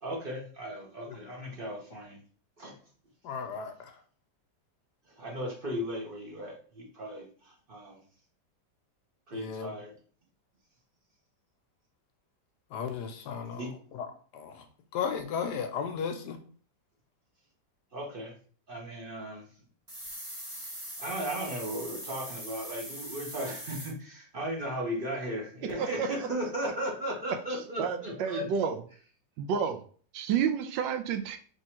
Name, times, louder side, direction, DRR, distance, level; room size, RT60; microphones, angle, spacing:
voice 1, 0.0-2.2 2.6-2.8 5.2-8.0 9.3-9.9 13.5-13.7 17.9-18.3 18.7-19.4 21.0-28.5, equal, 40° right, 1.0 m, -36 dB
voice 2, 3.2-4.0 9.3-9.8 12.7-14.1 14.3-14.7 14.9-16.4, left 6 dB, 75° left, 1.1 m, -35 dB
self timer on film camera, 19.9-23.9, right 1 dB, 20° right, 1.2 m, -41 dB
voice 3, 27.8-28.8 29.4-29.8 30.1-31.4, right 7 dB, 90° right, 1.3 m, -30 dB
3.4 x 3.0 x 4.3 m
omnidirectional pair, 2.0 m